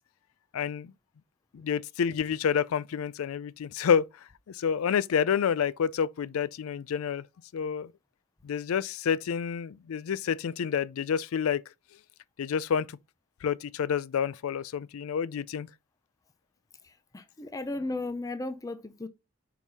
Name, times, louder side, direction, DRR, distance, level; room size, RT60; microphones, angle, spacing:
voice 1, 0.5-0.9 1.5-4.1 4.5-7.2 7.5-7.9 8.4-11.6 12.4-12.9 13.4-15.7, left 7 dB, 90° left, 0.4 m, -28 dB
voice 2, 17.1-19.1, left 2 dB, 15° left, 0.5 m, -35 dB
5.4 x 4.7 x 4.0 m
head